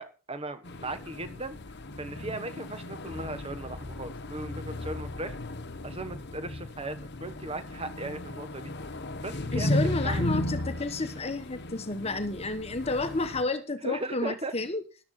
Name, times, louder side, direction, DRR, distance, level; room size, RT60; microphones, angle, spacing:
voice 1, 0.0-1.6 2.0-5.4 5.8-8.7 9.2-10.3 13.8-14.5, right 2 dB, 25° right, 10 dB, 1.2 m, -37 dB
sound 1, 0.6-13.4, left 1 dB, 50° left, 1.1 m, -35 dB
voice 2, 9.5-14.8, left 3 dB, 30° left, 10 dB, 1.2 m, -31 dB
13.0 x 12.0 x 4.3 m, 0.34 s
head